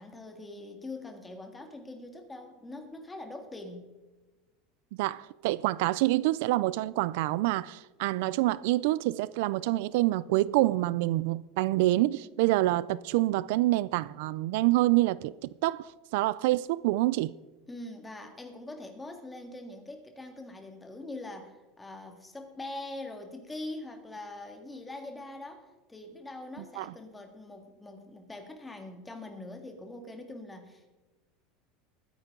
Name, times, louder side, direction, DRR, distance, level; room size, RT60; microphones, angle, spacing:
voice 1, 0.0-3.9 17.7-30.9, left 2 dB, 10° left, 1.8 m, -43 dB
voice 2, 5.0-17.3 26.8-26.9, right 17 dB, 70° right, 0.4 m, -27 dB
20.5 x 10.0 x 3.8 m
supercardioid pair, 150°, 0 cm